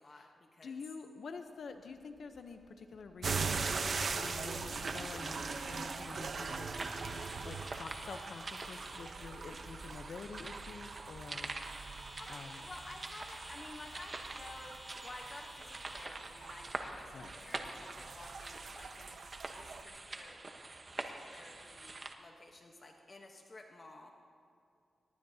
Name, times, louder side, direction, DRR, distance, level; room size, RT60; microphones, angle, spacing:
voice 1, 0.0-0.8 12.2-19.2 19.5-20.4 20.9-24.1, left 2 dB, 35° left, 2 dB, 1.1 m, -52 dB
voice 2, 0.6-6.8 7.4-11.5 12.3-12.7 17.1-17.3, left 5 dB, 65° left, 6 dB, 0.8 m, -48 dB
sound 1, 1.8-17.9, equal, 15° right, 4.4 m, -57 dB
sound 2, 3.2-19.8, right 4 dB, 50° right, 0.8 m, -41 dB
sound 3, 4.7-22.1, right 2 dB, 30° right, 1.1 m, -46 dB
23.0 x 20.5 x 2.8 m, 2.5 s
wide cardioid pair, 140°, 0 cm